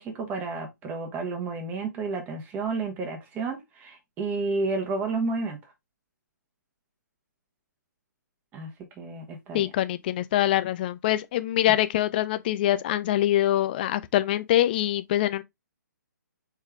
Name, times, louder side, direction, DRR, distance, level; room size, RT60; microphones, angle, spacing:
voice 1, 0.0-5.6 8.5-8.7 9.0-9.7, right 3 dB, 15° right, 1.2 m, -31 dB
voice 2, 9.5-15.4, left 13 dB, 30° left, 0.4 m, -24 dB
4.6 x 3.4 x 3.4 m
figure-of-eight pair, 130°, 10 cm